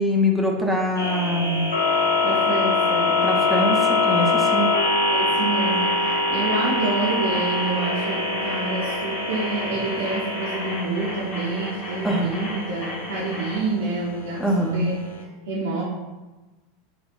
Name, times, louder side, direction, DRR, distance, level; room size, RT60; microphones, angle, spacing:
voice 1, 0.0-1.6 3.2-4.7 12.0-12.3 14.4-14.9, equal, ahead, 0 dB, 0.4 m, -23 dB
sound 1, 1.0-15.2, left 3 dB, 70° left, 0.3 m, -24 dB
voice 2, 2.2-3.2 5.1-14.9 15.5-15.8, right 3 dB, 65° right, -6 dB, 0.5 m, -28 dB
sound 2, 5.6-13.6, left 1 dB, 40° left, 0.7 m, -35 dB
3.5 x 2.1 x 2.5 m, 1.1 s
figure-of-eight pair, 80°, 0 cm